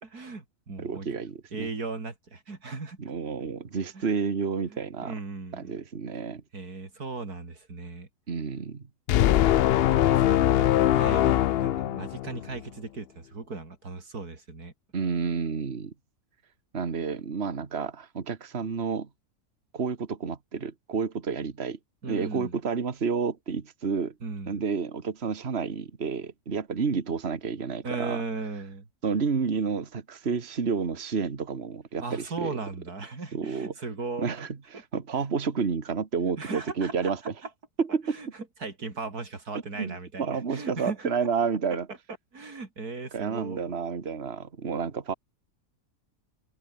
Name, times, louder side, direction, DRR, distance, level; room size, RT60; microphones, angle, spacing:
voice 1, 0.0-1.1 1.5-3.1 3.9-4.1 4.6-5.8 6.5-8.1 9.6-9.7 9.9-14.7 22.0-22.6 24.2-24.6 27.8-28.9 32.0-34.3 34.7-34.8 36.4-37.1 37.4-37.5 38.1-41.1 41.7-42.0 42.3-43.6, right 3 dB, 90° right, 4.1 m, -37 dB
voice 2, 0.8-1.7 3.0-5.1 5.5-6.4 8.3-8.8 9.9-10.0 14.9-15.9 16.7-19.1 19.7-21.8 22.1-24.1 24.5-28.2 29.0-32.6 33.3-33.7 34.2-37.2 37.8-38.2 39.8-41.9 43.1-45.1, right 5 dB, 45° right, 2.0 m, -30 dB
sound 1, 9.1-12.6, left 12 dB, 80° left, 0.5 m, -22 dB
open air
omnidirectional pair, 1.6 m